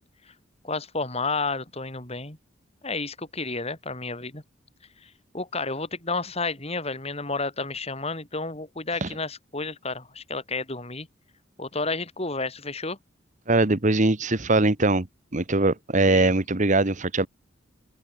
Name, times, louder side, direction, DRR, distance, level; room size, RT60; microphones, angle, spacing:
voice 1, 0.6-2.4 2.8-4.4 5.0-5.1 5.3-11.1 11.6-13.0 16.0-16.3, left 3 dB, 30° left, 5.2 m, -31 dB
voice 2, 13.5-15.1 15.3-17.3, right 2 dB, 40° right, 1.4 m, -21 dB
open air
head